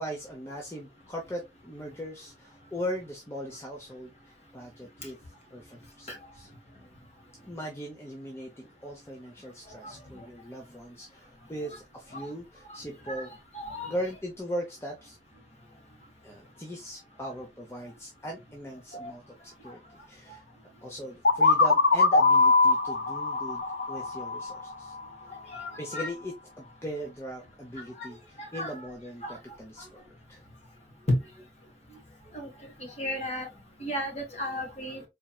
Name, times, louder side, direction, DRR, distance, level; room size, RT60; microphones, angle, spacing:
voice 1, 0.0-5.2 5.5-6.5 7.5-13.3 13.9-15.2 16.2-20.4 20.8-25.0 25.8-29.9 30.3-30.4, equal, 15° left, 0.7 m, -39 dB
voice 2, 13.5-13.9 18.9-19.1 25.5-26.1 28.4-28.7 29.2-29.3 31.1-31.2 32.3-32.5 32.8-33.5 33.8-35.0, left 1 dB, 35° left, 1.5 m, -33 dB
sound 1, 21.2-25.0, left 3 dB, 60° left, 0.6 m, -22 dB
4.3 x 3.5 x 2.3 m
head